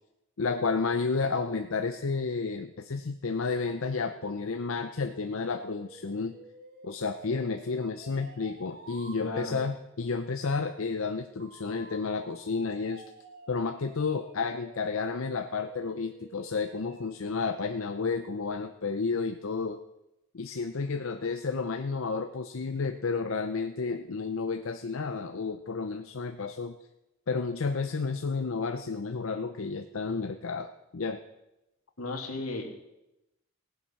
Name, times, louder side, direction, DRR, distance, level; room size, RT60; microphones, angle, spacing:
voice 1, 0.4-6.4 6.8-13.0 13.5-19.8 20.3-26.8 27.3-31.2, left 4 dB, 65° left, 7 dB, 0.6 m, -31 dB
sound 1, 4.0-9.2 11.4-17.2, right 2 dB, 45° right, 1.8 m, -51 dB
voice 2, 9.2-9.6 32.0-32.7, left 2 dB, 90° left, 3 dB, 2.4 m, -34 dB
18.0 x 7.7 x 5.7 m, 0.92 s
head